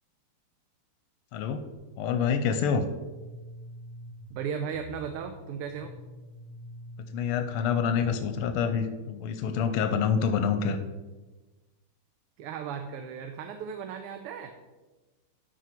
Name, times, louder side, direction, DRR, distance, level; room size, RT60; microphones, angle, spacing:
voice 1, 1.3-1.6 2.0-2.9 7.1-10.8, left 6 dB, 90° left, 7 dB, 1.5 m, -27 dB
sound 1, 1.7-8.6, left 1 dB, 70° left, 2.1 m, -47 dB
voice 2, 4.3-5.9 12.4-14.5, right 7 dB, 90° right, 6 dB, 1.6 m, -36 dB
12.5 x 4.8 x 4.5 m, 1.2 s
omnidirectional pair, 2.4 m